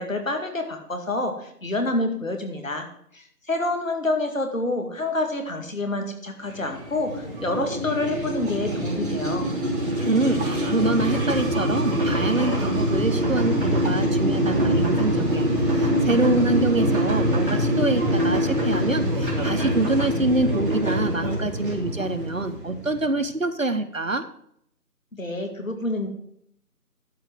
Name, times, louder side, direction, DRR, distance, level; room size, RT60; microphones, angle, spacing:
voice 1, 0.0-2.9 3.1-9.5 25.1-26.1, left 2 dB, 55° left, 4 dB, 2.2 m, -27 dB
sound 1, 6.5-23.1, equal, 35° right, 3.2 m, -24 dB
voice 2, 10.1-15.5 15.8-24.2, right 2 dB, 55° right, 10 dB, 1.0 m, -25 dB
12.5 x 4.5 x 7.6 m, 0.70 s
figure-of-eight pair, 165°, 48 cm